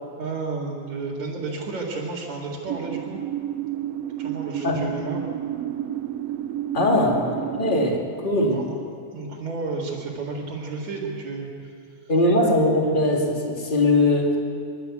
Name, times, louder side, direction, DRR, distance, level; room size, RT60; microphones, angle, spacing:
voice 1, 0.2-3.2 4.2-5.2 8.4-8.8 9.1-11.7, right 3 dB, 65° right, -7 dB, 3.4 m, -32 dB
sound 1, 2.7-8.0, right 12 dB, 85° right, 1.4 m, -31 dB
voice 2, 6.7-8.6 12.1-14.4, left 1 dB, 15° left, -1 dB, 2.3 m, -21 dB
27.0 x 11.5 x 8.3 m, 2.4 s
omnidirectional pair, 3.6 m